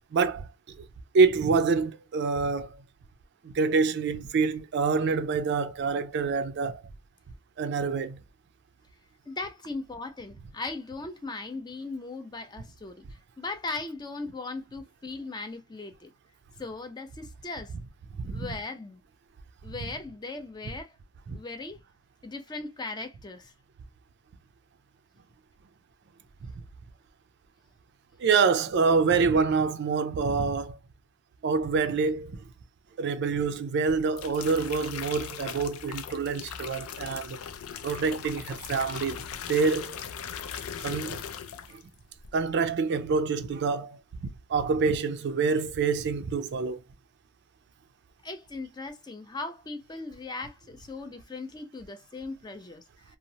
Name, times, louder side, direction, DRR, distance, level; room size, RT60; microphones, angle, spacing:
voice 1, 0.1-0.5 0.8-0.9 1.1-2.8 3.4-6.8 7.6-8.2 18.2-18.5 21.3-21.4 28.2-30.8 31.4-32.4 33.0-37.4 37.8-40.0 40.8-41.2 41.7-41.8 42.3-44.0 44.5-46.8, right 4 dB, 55° right, 0.3 m, -26 dB
voice 2, 9.3-13.1 13.4-16.1 16.6-17.7 18.3-19.0 19.6-21.0 21.3-21.8 22.2-23.5 48.2-53.2, left 3 dB, 20° left, 0.4 m, -38 dB
sound 1, 33.9-41.9 42.2-42.6, left 7 dB, 90° left, 0.4 m, -39 dB
2.8 x 2.0 x 2.6 m
head